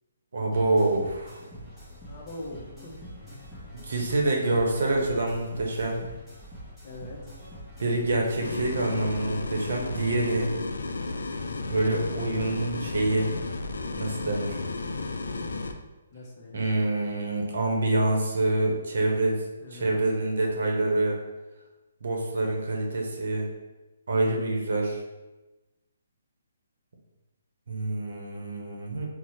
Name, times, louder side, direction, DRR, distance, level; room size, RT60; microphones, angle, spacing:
voice 1, 0.3-1.3 3.8-6.0 7.8-10.5 11.6-13.3 14.0-14.6 16.5-19.3 19.7-21.2 22.0-23.5 24.1-25.0 27.7-29.1, right 2 dB, 70° right, 0 dB, 0.7 m, -26 dB
sound 1, 0.5-8.5, equal, ahead, 0.8 m, -45 dB
voice 2, 2.1-3.0 6.8-7.3 16.1-16.7 19.6-20.0, left 1 dB, 25° left, -3 dB, 0.6 m, -42 dB
sound 2, 8.4-15.7, left 3 dB, 80° left, 0.3 m, -33 dB
4.0 x 2.0 x 3.0 m, 1.1 s
hypercardioid pair, 155°, 0 cm